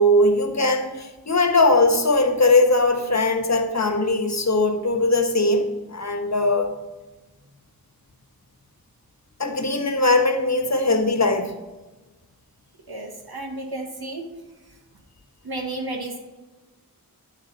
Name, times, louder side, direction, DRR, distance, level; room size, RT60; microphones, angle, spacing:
voice 1, 0.0-6.7 9.4-11.6, left 2 dB, 45° left, 5 dB, 1.2 m, -20 dB
voice 2, 12.9-14.2 15.4-16.2, right 2 dB, 80° right, 1 dB, 1.7 m, -32 dB
10.5 x 3.7 x 5.3 m, 1.2 s
wide cardioid pair, 40°, 37 cm